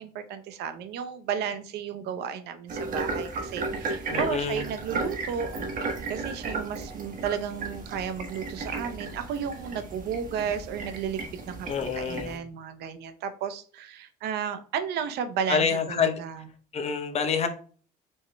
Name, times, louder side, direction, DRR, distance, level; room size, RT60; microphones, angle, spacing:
voice 1, 0.0-5.5 6.1-16.4, right 7 dB, 80° right, 10 dB, 0.7 m, -33 dB
sound 1, 2.7-12.4, right 3 dB, 55° right, 1.3 m, -34 dB
voice 2, 4.1-4.7 11.7-12.4 15.5-16.2 16.7-17.5, left 6 dB, 40° left, 6 dB, 0.8 m, -27 dB
4.7 x 4.4 x 2.2 m, 0.43 s
cardioid pair, 110°, 17 cm